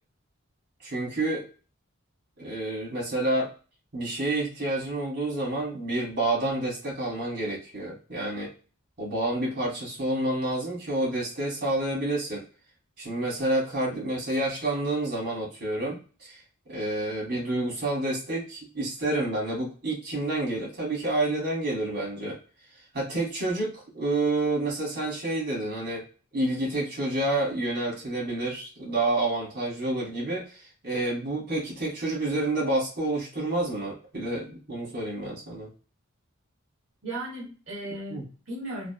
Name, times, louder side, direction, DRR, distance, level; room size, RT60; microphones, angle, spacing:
voice 1, 0.8-1.4 2.4-3.5 3.9-8.5 9.0-12.4 13.0-16.4 16.7-22.4 22.9-26.0 26.3-30.5 30.8-35.7 38.1-38.2, right 2 dB, 50° right, -3 dB, 1.3 m, -29 dB
voice 2, 37.0-38.9, right 1 dB, 65° right, -5 dB, 1.1 m, -36 dB
3.2 x 2.0 x 2.2 m, 0.36 s
head